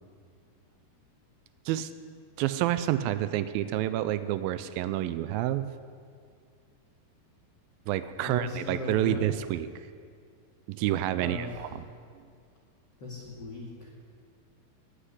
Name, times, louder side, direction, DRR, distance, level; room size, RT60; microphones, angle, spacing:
voice 1, 2.4-5.7 7.9-9.7 10.7-11.8, right 13 dB, 80° right, 13 dB, 2.3 m, -28 dB
voice 2, 8.2-9.2 11.2-11.5 13.0-13.9, left 3 dB, 35° left, -4 dB, 2.3 m, -38 dB
9.9 x 9.5 x 9.8 m, 2.2 s
omnidirectional pair, 4.3 m